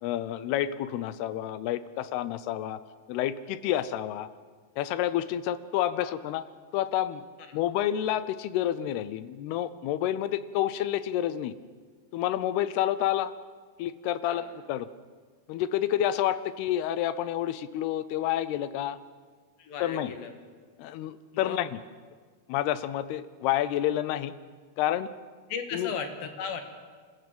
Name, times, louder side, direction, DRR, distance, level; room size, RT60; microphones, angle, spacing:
voice 1, 0.0-2.8 3.1-4.3 4.8-6.4 6.7-7.2 7.5-11.5 12.1-13.3 13.8-14.9 15.5-19.0 19.8-20.1 20.8-21.8 22.5-24.3 24.8-25.1 25.7-25.9, left 12 dB, 90° left, 15 dB, 2.8 m, -29 dB
voice 2, 19.6-20.3 21.3-21.6 25.5-26.6, left 6 dB, 70° left, 6 dB, 3.4 m, -36 dB
27.0 x 14.0 x 7.6 m, 1.5 s
omnidirectional pair, 4.5 m